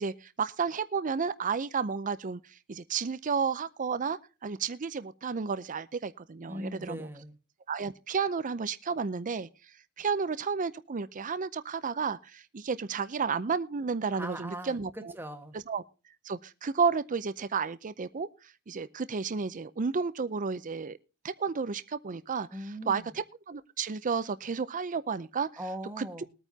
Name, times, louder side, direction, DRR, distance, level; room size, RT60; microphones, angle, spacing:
voice 1, 0.0-2.4 2.7-7.1 7.7-9.5 10.0-15.1 15.5-15.8 16.2-18.3 18.7-21.0 21.2-22.5 22.9-25.5 26.0-26.2, right 5 dB, 40° right, 0.5 m, -32 dB
voice 2, 6.5-7.4 14.1-15.5 22.5-23.1 25.6-26.3, equal, 10° right, 1.5 m, -40 dB
21.5 x 9.1 x 2.8 m
head